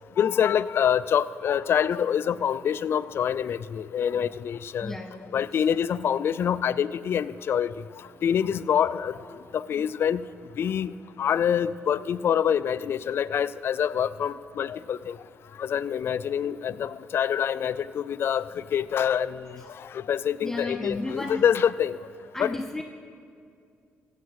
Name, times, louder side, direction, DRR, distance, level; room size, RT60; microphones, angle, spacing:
voice 1, 0.2-5.0 5.3-7.7 8.2-9.2 9.5-10.3 10.6-15.2 15.6-22.0 22.4-22.5, left 8 dB, 55° left, 16 dB, 0.3 m, -26 dB
voice 2, 4.8-5.5 20.4-21.4 22.3-22.8, left 2 dB, 10° left, 3 dB, 0.8 m, -33 dB
15.5 x 8.2 x 4.8 m, 2.4 s
supercardioid pair, 70°, 5 cm